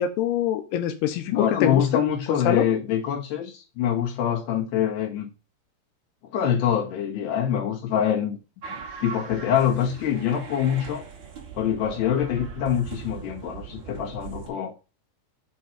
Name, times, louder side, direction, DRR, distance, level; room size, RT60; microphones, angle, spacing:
voice 1, 0.0-2.1 2.5-2.7, left 9 dB, 90° left, 2.9 m, -24 dB
voice 2, 1.3-5.3 6.3-8.4 9.0-11.0 11.6-14.7, left 9 dB, 60° left, 2.9 m, -25 dB
sound 1, 8.6-14.5, right 6 dB, 80° right, 1.0 m, -40 dB
6.2 x 4.7 x 4.4 m
omnidirectional pair, 4.7 m